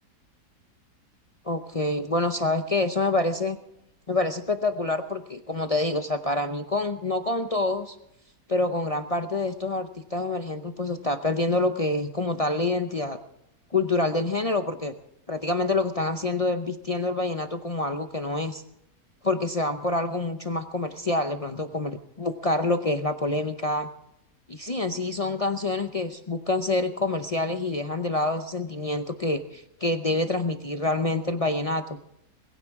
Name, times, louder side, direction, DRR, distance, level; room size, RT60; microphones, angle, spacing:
voice 1, 1.4-3.6 4.1-8.0 8.5-13.2 13.7-14.9 15.3-18.6 19.2-23.9 24.5-32.0, left 2 dB, 45° left, 7 dB, 0.4 m, -27 dB
21.5 x 16.0 x 3.6 m, 0.79 s
omnidirectional pair, 1.7 m